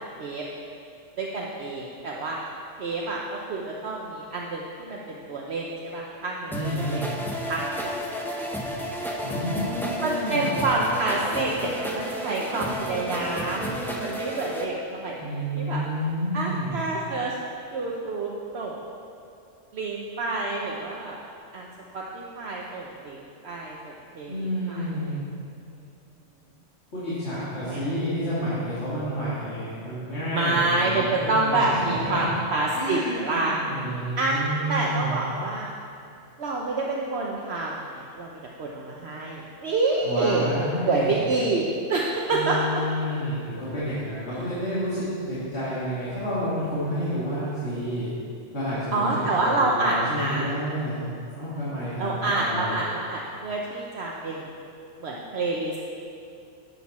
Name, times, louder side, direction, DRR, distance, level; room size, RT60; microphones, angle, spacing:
voice 1, 1.2-2.4 2.8-6.5 6.9-7.1 7.5-7.8 8.2-8.3 10.0-13.7 14.0-15.8 16.3-17.3 17.7-18.8 19.7-21.2 21.5-21.7 21.9-24.9 27.6-27.9 30.3-33.6 34.2-34.4 34.7-35.7 36.4-40.5 40.9-42.6 48.9-50.5 52.0-54.4 55.0-55.8, right 2 dB, 60° right, -2 dB, 1.0 m, -27 dB
voice 2, 6.5-7.1 9.2-10.7 15.2-16.8 24.3-25.2 26.9-32.4 32.7-35.2 40.0-41.2 42.3-48.1 48.5-49.3 49.6-51.0 51.3-52.8, equal, 60° left, -11 dB, 2.5 m, -30 dB
sound 1, 6.5-14.6, equal, ahead, 0.7 m, -32 dB
10.5 x 8.2 x 4.2 m, 2.5 s
omnidirectional pair, 1.3 m